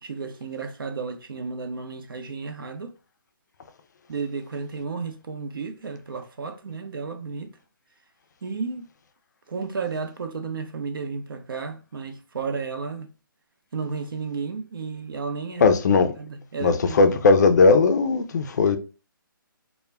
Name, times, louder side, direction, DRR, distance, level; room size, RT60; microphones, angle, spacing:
voice 1, 0.0-2.9 4.1-7.5 8.4-8.9 9.5-13.1 13.7-15.8 16.2-17.0, right 5 dB, 75° right, 0.6 m, -33 dB
voice 2, 15.6-16.1 16.6-18.8, left 4 dB, 50° left, 0.4 m, -18 dB
2.2 x 2.1 x 3.3 m
hypercardioid pair, 155°, 12 cm